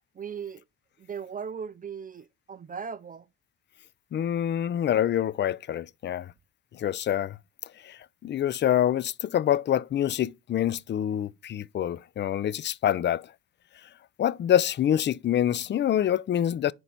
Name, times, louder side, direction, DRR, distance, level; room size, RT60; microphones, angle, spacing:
voice 1, 0.2-0.6 1.0-3.3, right 6 dB, 30° right, 0.5 m, -38 dB
voice 2, 4.1-6.3 6.8-7.4 7.8-13.3 14.2-16.7, left 10 dB, 40° left, 0.5 m, -26 dB
10.0 x 4.7 x 4.0 m
cardioid pair, 90°, 29 cm